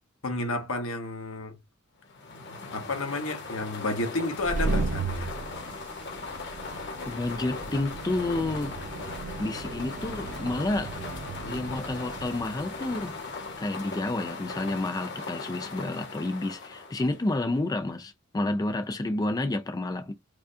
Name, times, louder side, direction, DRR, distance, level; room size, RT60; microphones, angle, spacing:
voice 1, 0.2-1.6 2.7-5.3 11.4-11.5, left 2 dB, 75° left, 1.2 m, -31 dB
sound 1, 2.0-17.5, left 4 dB, 55° left, 1.3 m, -39 dB
sound 2, 4.2-14.7, right 3 dB, 35° right, 0.5 m, -36 dB
voice 2, 7.1-8.7 9.4-10.9 11.5-13.1 13.6-20.1, left 2 dB, 20° left, 0.3 m, -30 dB
4.8 x 2.4 x 2.6 m
head